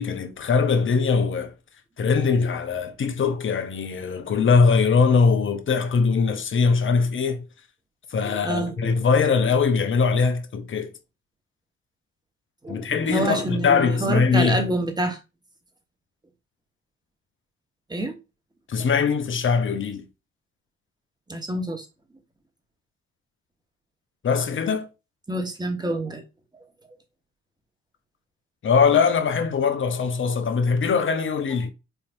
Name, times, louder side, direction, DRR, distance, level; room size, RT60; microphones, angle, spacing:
voice 1, 0.0-1.5 2.0-7.4 8.1-10.9 12.7-14.7 18.7-20.0 24.2-24.9 28.6-31.7, left 5 dB, 30° left, 0.8 m, -21 dB
voice 2, 8.2-8.9 12.6-15.2 17.9-18.1 21.3-21.9 25.3-26.2, right 1 dB, 10° right, 1.2 m, -27 dB
4.3 x 3.4 x 2.5 m
figure-of-eight pair, 40°, 41 cm